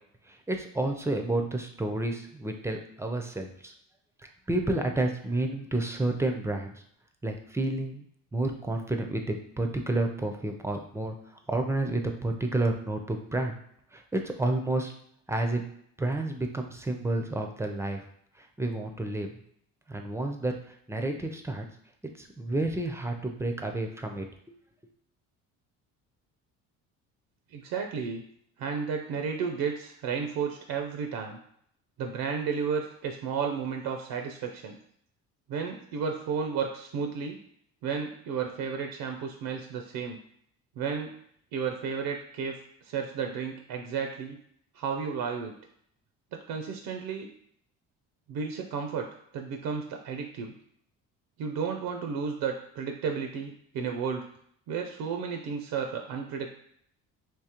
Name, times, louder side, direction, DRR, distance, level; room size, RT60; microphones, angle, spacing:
voice 1, 0.3-3.7 4.5-6.8 7.2-8.0 8.3-11.1 11.5-13.6 13.9-14.9 15.3-15.6 16.0-18.0 18.4-19.3 19.9-21.6 22.2-24.5, right 2 dB, 10° right, 4 dB, 0.4 m, -30 dB
voice 2, 27.5-28.2 28.6-31.4 32.0-34.8 35.5-37.4 37.8-40.2 40.8-41.1 41.5-44.4 44.7-45.5 46.3-47.3 48.3-49.1 49.3-50.5 51.4-54.3 54.7-56.5, right 6 dB, 70° right, 4 dB, 0.6 m, -32 dB
3.7 x 2.8 x 2.9 m, 0.67 s
cardioid pair, 95°, 35 cm